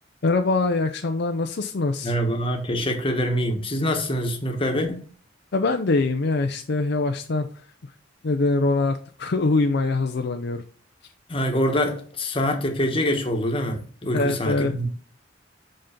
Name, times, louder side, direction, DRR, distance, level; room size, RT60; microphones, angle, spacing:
voice 1, 0.2-2.1 5.5-7.5 8.2-10.6 14.1-14.8, left 3 dB, 60° left, 0.6 m, -23 dB
voice 2, 2.0-5.1 11.3-14.9, equal, 30° left, 1.3 m, -25 dB
5.7 x 5.4 x 5.1 m
head